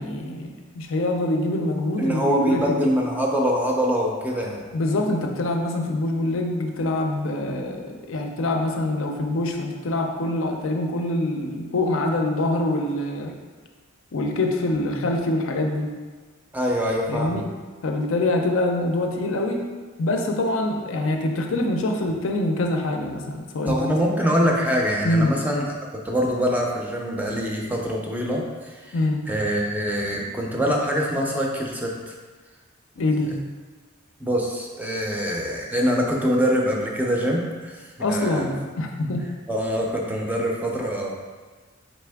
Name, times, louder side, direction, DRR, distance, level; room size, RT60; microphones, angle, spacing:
voice 1, 0.0-2.8 4.7-13.3 14.1-15.9 17.1-17.5 17.8-19.6 20.0-24.0 25.0-25.3 28.9-29.2 33.0-33.3 38.0-39.2, left 2 dB, 75° left, 3 dB, 0.5 m, -25 dB
voice 2, 2.0-4.6 16.5-17.4 23.6-25.8 26.0-29.0 29.3-32.1 34.2-37.8 38.1-38.5 39.5-41.1, equal, 10° right, -1 dB, 0.4 m, -24 dB
4.2 x 3.3 x 3.4 m, 1.4 s
head